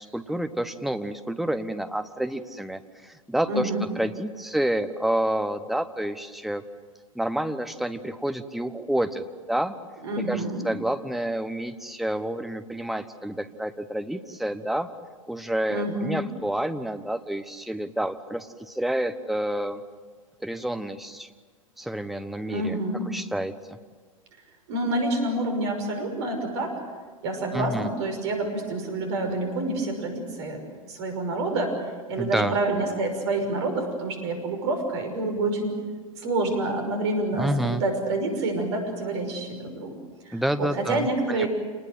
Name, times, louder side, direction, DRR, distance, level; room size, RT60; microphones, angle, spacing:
voice 1, 0.0-6.6 7.1-9.8 10.2-14.9 15.3-19.8 20.4-21.3 21.8-22.8 23.1-23.8 27.5-27.9 32.2-32.5 37.3-37.8 40.3-41.5, right 1 dB, ahead, 9 dB, 1.2 m, -29 dB
voice 2, 3.5-3.8 10.0-10.7 15.7-16.2 22.5-23.1 24.7-26.8 27.2-30.6 30.9-31.8 32.1-35.8 36.2-40.0 40.2-41.5, right 2 dB, 55° right, 5 dB, 5.9 m, -28 dB
28.0 x 20.0 x 8.0 m, 1.5 s
figure-of-eight pair, 90°, 17 cm